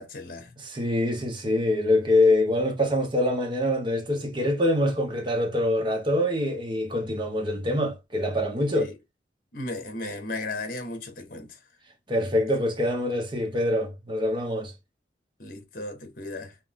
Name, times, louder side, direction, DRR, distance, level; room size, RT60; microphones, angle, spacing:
voice 1, 0.0-0.5 8.8-8.9 9.5-11.6 15.4-16.6, left 2 dB, 50° left, 1.3 m, -36 dB
voice 2, 0.6-8.9 12.1-14.7, left 1 dB, 25° right, 1.0 m, -25 dB
3.6 x 3.0 x 3.5 m
head